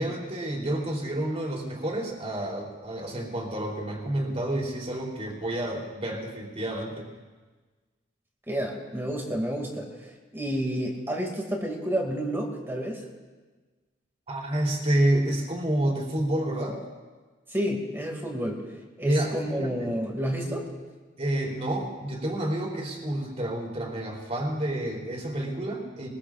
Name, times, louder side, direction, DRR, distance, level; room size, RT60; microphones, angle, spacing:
voice 1, 0.0-7.1 14.3-16.8 19.0-19.7 21.2-26.1, right 1 dB, 35° right, -1 dB, 3.5 m, -29 dB
voice 2, 8.5-13.0 17.5-18.6 19.0-20.7, equal, 15° right, 0 dB, 2.4 m, -30 dB
23.0 x 21.5 x 2.5 m, 1.3 s
head